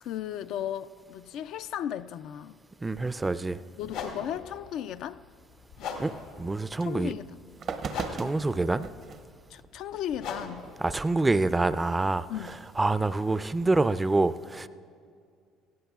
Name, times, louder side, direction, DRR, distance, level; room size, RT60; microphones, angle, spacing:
voice 1, 0.0-2.6 3.8-5.2 6.8-7.4 9.5-10.6 12.3-12.6, left 10 dB, 70° left, 0.3 m, -35 dB
voice 2, 2.8-3.6 6.0-7.1 8.1-8.9 10.8-12.3 12.8-14.7, right 2 dB, 20° right, 0.4 m, -26 dB
sound 1, 3.8-12.7, left 5 dB, 85° left, 1.9 m, -42 dB
sound 2, 7.0-7.1 7.5-9.2 9.9-10.0 12.4-12.9, right 5 dB, 55° right, 0.7 m, -38 dB
18.5 x 16.0 x 2.4 m
supercardioid pair, 80°, 0 cm